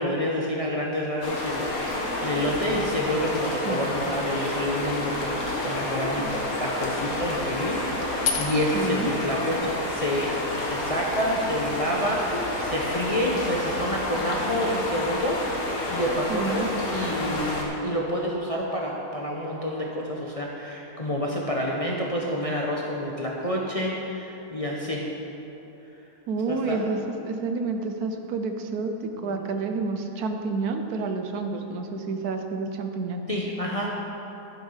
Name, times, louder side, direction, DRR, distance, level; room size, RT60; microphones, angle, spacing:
voice 1, 0.0-5.4 5.6-15.4 15.9-25.1 26.5-26.8 29.2-29.5 33.3-33.9, equal, 30° left, -3 dB, 0.8 m, -28 dB
sound 1, 1.2-17.6, left 1 dB, 60° left, 1.9 m, -29 dB
sound 2, 8.0-13.2, left 6 dB, 80° left, 1.5 m, -37 dB
voice 2, 8.7-9.1 16.3-16.7 26.3-27.0 27.2-33.2, right 4 dB, 70° right, 5 dB, 1.2 m, -29 dB
11.0 x 7.2 x 5.6 m, 2.9 s
omnidirectional pair, 1.7 m